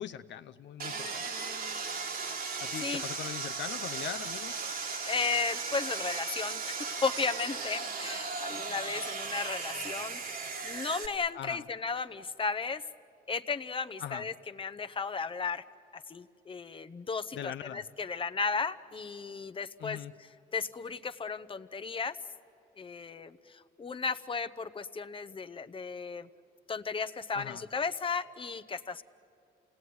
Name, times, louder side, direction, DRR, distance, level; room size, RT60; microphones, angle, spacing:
voice 1, 0.0-1.4 2.6-4.5 11.3-11.6 14.0-14.3 17.3-17.8 19.8-20.1 27.3-27.6, left 10 dB, 65° left, 10 dB, 0.6 m, -41 dB
Sawing, 0.8-11.1, right 4 dB, 45° right, 1.6 m, -36 dB
voice 2, 0.9-1.8 2.8-3.0 5.0-12.8 13.3-15.6 15.9-22.2 22.8-26.3 26.7-29.0, left 5 dB, 25° left, 11 dB, 0.8 m, -35 dB
28.5 x 18.0 x 9.4 m, 2.5 s
cardioid pair, 90°, 20 cm